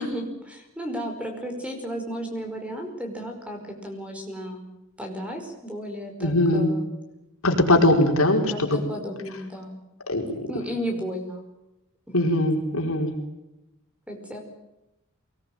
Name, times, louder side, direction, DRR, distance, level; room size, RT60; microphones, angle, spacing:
voice 1, 0.0-4.7 5.0-6.9 8.5-9.8 10.5-11.4 12.1-12.2 14.1-14.4, equal, 5° right, 4 dB, 5.2 m, -33 dB
voice 2, 6.2-6.7 7.4-8.8 10.1-10.5 12.1-13.1, left 1 dB, 70° left, 2 dB, 4.9 m, -21 dB
24.5 x 20.0 x 9.1 m, 0.92 s
head